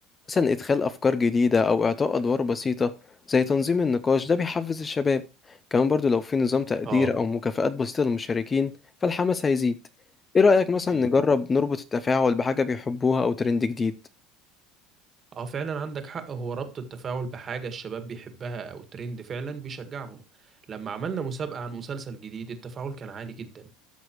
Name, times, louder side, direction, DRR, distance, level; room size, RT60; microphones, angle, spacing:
voice 1, 0.3-2.9 3.3-5.2 5.5-8.7 9.0-9.8 10.3-13.9, left 4 dB, 20° left, 0.5 m, -23 dB
voice 2, 6.8-7.2 10.9-11.1 15.3-23.7, right 5 dB, 30° right, 1.7 m, -35 dB
13.5 x 6.2 x 3.0 m
supercardioid pair, 130°, 0 cm